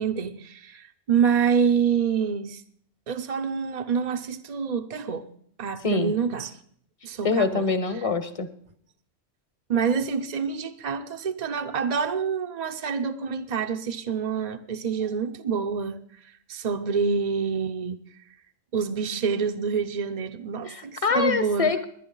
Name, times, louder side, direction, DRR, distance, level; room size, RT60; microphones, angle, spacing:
voice 1, 0.0-2.6 3.1-5.3 5.6-6.6 7.0-7.7 9.7-16.0 16.5-18.0 18.7-21.7, right 6 dB, 45° right, 0.6 m, -27 dB
voice 2, 7.2-8.5 20.6-21.9, left 4 dB, 30° left, 0.9 m, -25 dB
19.0 x 10.5 x 3.9 m
omnidirectional pair, 1.3 m